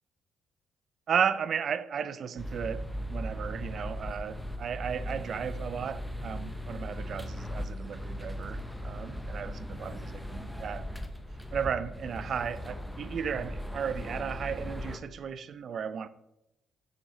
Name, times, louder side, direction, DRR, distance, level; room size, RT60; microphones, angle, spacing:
voice 1, 1.1-10.9 11.5-16.1, right 7 dB, 55° right, 0.5 m, -34 dB
sound 1, 2.4-15.0, equal, ahead, 0.8 m, -38 dB
7.1 x 6.5 x 5.1 m
cardioid pair, 90°, 0 cm